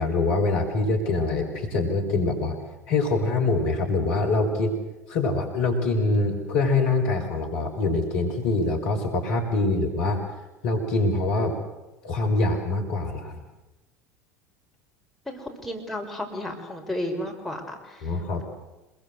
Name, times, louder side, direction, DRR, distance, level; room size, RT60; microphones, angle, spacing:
voice 1, 0.0-2.6 2.9-4.7 5.1-10.2 10.6-11.6 12.0-13.4 18.0-18.4, left 3 dB, 60° left, 3 dB, 5.7 m, -24 dB
voice 2, 15.3-18.1, left 1 dB, ahead, 1 dB, 5.6 m, -33 dB
27.0 x 22.5 x 8.0 m, 1.0 s
figure-of-eight pair, 70°, 9 cm